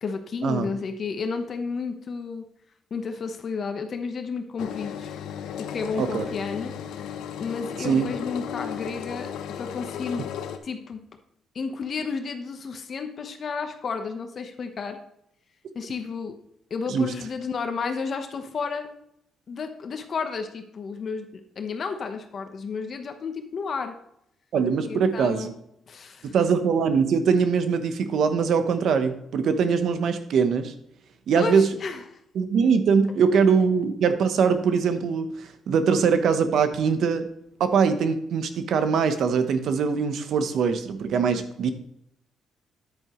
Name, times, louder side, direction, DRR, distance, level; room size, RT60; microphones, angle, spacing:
voice 1, 0.0-2.4 2.9-5.1 5.6-6.7 7.4-9.3 9.6-10.3 10.6-11.0 11.5-15.0 15.7-16.3 16.7-18.9 19.5-23.9 24.8-25.5 25.9-26.3 31.3-32.2, left 5 dB, 50° left, 6 dB, 1.0 m, -32 dB
Engine, 4.6-10.6, left 8 dB, 85° left, 0.8 m, -35 dB
voice 2, 6.0-6.3 7.8-8.1 16.9-17.1 24.5-25.5 26.3-30.7 31.3-31.7 32.3-37.3 37.6-41.7, right 6 dB, 70° right, 10 dB, 0.9 m, -22 dB
9.7 x 8.6 x 3.1 m, 0.77 s
cardioid pair, 90°, 0 cm